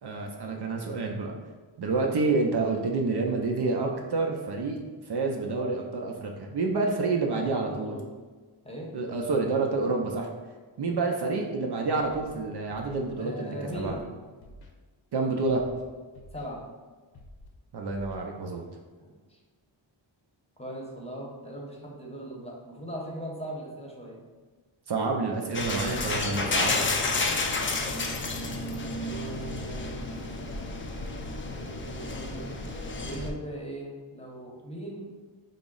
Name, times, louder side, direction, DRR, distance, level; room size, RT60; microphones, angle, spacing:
voice 1, 0.0-1.3 1.8-4.8 5.1-7.9 8.9-10.3 10.8-14.0 15.1-15.6 17.7-18.6 24.9-27.0, right 3 dB, 55° right, 1 dB, 0.5 m, -28 dB
voice 2, 7.4-8.1 8.6-8.9 13.2-14.2 16.3-16.6 19.0-19.4 20.6-24.3 27.4-28.0 28.9-30.1 31.5-32.5 33.0-35.1, right 1 dB, 15° left, -3 dB, 0.8 m, -39 dB
Scratching (performance technique), 12.0-12.3 12.7-13.0 13.7-14.0 14.4-14.7 15.4-15.8 16.1-16.5 17.1-17.5 17.9-18.2, left 1 dB, 50° left, 0.7 m, -49 dB
sound 1, 25.5-33.3, left 3 dB, 30° left, 0.3 m, -31 dB
3.8 x 2.0 x 3.7 m, 1.4 s
cardioid pair, 60°, 49 cm